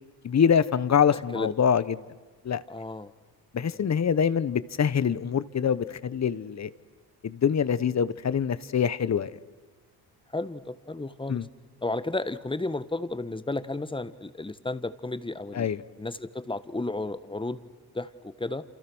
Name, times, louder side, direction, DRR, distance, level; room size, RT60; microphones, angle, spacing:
voice 1, 0.2-2.0 2.4-2.6 3.5-6.7 7.2-9.3 11.3-11.4 15.5-15.8, left 7 dB, 45° left, 16 dB, 1.2 m, -25 dB
voice 2, 1.1-1.5 2.7-3.1 3.7-3.8 10.3-11.4 11.8-15.7 16.0-18.6, left 2 dB, 15° left, 13 dB, 1.4 m, -33 dB
28.5 x 28.5 x 6.3 m, 1.3 s
cardioid pair, 100°, 39 cm